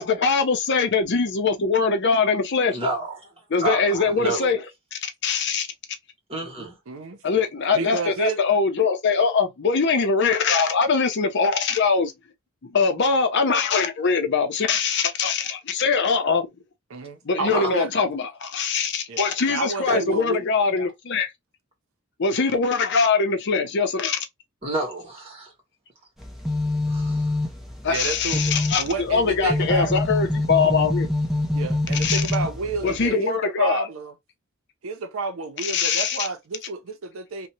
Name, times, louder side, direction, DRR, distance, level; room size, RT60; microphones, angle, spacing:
voice 1, 0.0-2.8 3.5-5.7 7.2-12.1 12.7-16.5 17.2-21.3 22.2-24.3 27.8-31.1 32.0-32.2 32.8-33.9 35.6-36.3, left 5 dB, 55° left, 0.6 m, -22 dB
voice 2, 2.7-3.2 3.6-4.5 6.3-6.8 17.5-17.7 19.9-20.0 24.6-25.5 26.9-27.2, right 2 dB, 30° right, 1.3 m, -28 dB
voice 3, 6.9-7.2 7.7-8.4 16.9-18.0 19.1-19.2 19.5-20.4 27.9-30.0 31.5-34.1 34.8-37.5, right 4 dB, 80° right, 0.6 m, -30 dB
sound 1, 26.2-33.1, left 2 dB, ahead, 0.7 m, -26 dB
2.7 x 2.2 x 2.7 m
head